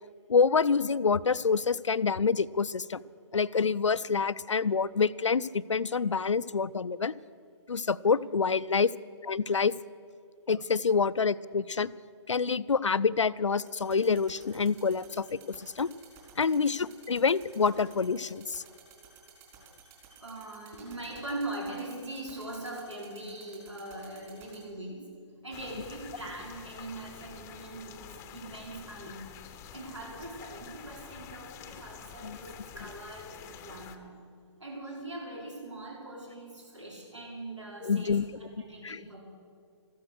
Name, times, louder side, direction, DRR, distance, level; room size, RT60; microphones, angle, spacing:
voice 1, 0.3-3.0 3.3-7.1 7.7-8.9 9.2-9.7 10.5-11.9 12.3-15.9 16.4-18.6 32.2-32.4 37.8-38.2 38.8-39.0, left 5 dB, 85° left, 18 dB, 0.4 m, -27 dB
sound 1, 13.7-24.6, right 9 dB, 30° right, 4.3 m, -53 dB
voice 2, 20.1-25.1 25.4-29.2 29.7-34.1 34.6-39.2, right 2 dB, 75° right, -2 dB, 5.0 m, -41 dB
sound 2, 25.5-34.0, left 8 dB, 20° left, 0.8 m, -48 dB
14.5 x 12.5 x 6.5 m, 2.3 s
figure-of-eight pair, 130°, 15 cm